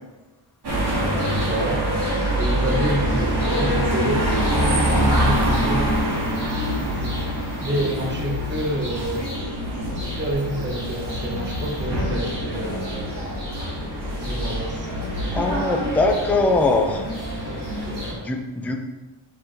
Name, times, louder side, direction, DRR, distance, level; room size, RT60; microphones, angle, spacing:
sound 1, 0.6-18.1, equal, 50° right, 2.1 m, -24 dB
voice 1, 1.1-1.9 2.4-5.9 6.9-7.1 7.6-9.2 10.1-13.2 14.2-14.9 17.5-18.3, right 1 dB, 20° right, 1 dB, 1.0 m, -29 dB
voice 2, 15.3-17.0 18.2-18.9, left 3 dB, 5° left, 3 dB, 0.4 m, -21 dB
5.8 x 5.6 x 3.3 m, 1.1 s
wide cardioid pair, 155°, 50 cm